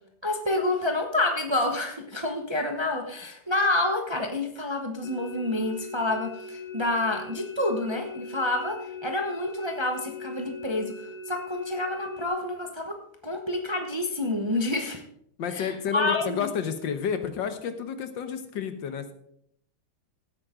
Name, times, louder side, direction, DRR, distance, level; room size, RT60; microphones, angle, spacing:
voice 1, 0.2-10.9 11.3-13.0 13.2-15.0 15.5-16.5, left 2 dB, 20° right, 3 dB, 0.8 m, -28 dB
sound 1, 5.0-12.3, left 2 dB, 55° left, 1.2 m, -40 dB
voice 2, 15.4-19.1, left 7 dB, 75° left, 9 dB, 1.8 m, -30 dB
16.0 x 8.7 x 3.8 m, 0.71 s
omnidirectional pair, 2.0 m